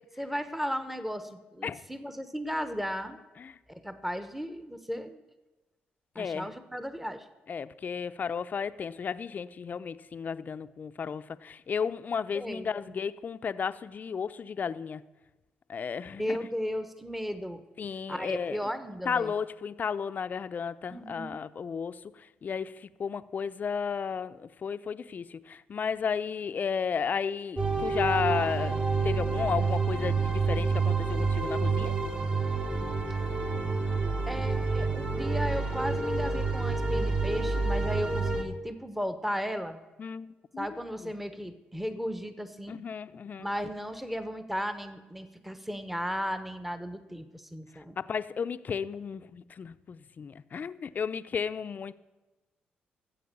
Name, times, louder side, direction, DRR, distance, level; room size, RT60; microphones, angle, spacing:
voice 1, 0.2-3.2 3.7-5.2 6.1-7.2 12.3-13.0 16.2-17.6 18.1-19.3 20.9-21.4 34.0-39.8 40.6-42.8 43.4-48.0, equal, 5° right, 11 dB, 1.1 m, -35 dB
voice 2, 6.2-6.5 7.5-15.0 15.7-16.4 17.8-18.7 19.0-31.9 40.0-40.7 41.0-41.1 42.7-43.5 48.0-51.9, left 6 dB, 50° left, 13 dB, 0.6 m, -33 dB
sound 1, 27.6-38.4, right 4 dB, 40° right, 2.4 m, -28 dB
14.0 x 8.0 x 6.8 m, 1.1 s
supercardioid pair, 60°, 4 cm